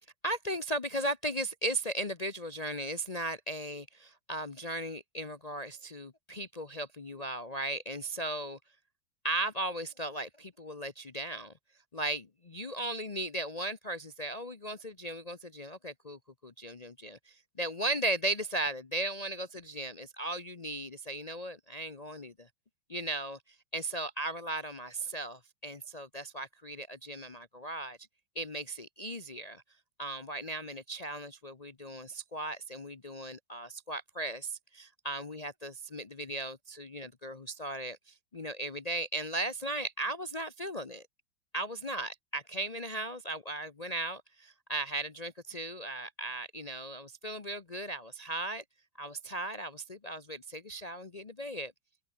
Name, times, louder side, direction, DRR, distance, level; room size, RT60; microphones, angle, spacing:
voice 1, 0.2-3.8 4.3-8.6 9.2-11.5 11.9-22.5 22.9-23.4 23.7-28.0 28.3-29.6 30.0-41.1 41.5-48.6 49.0-51.7, right 2 dB, 55° left, 0.4 m, -37 dB
open air
omnidirectional pair, 2.2 m